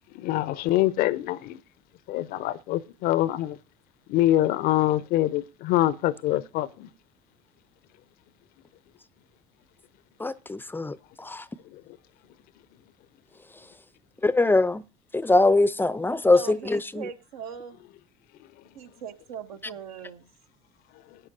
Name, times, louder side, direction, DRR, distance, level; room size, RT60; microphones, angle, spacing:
voice 1, 0.2-1.6 2.1-3.6 4.1-6.9, left 14 dB, 55° left, 0.6 m, -24 dB
voice 2, 10.2-11.5 14.2-14.8 15.1-17.1, left 2 dB, 10° left, 0.5 m, -22 dB
voice 3, 16.3-17.8 18.7-20.3, right 7 dB, 70° right, 1.1 m, -39 dB
18.0 x 9.7 x 2.7 m
figure-of-eight pair, 60°, 19 cm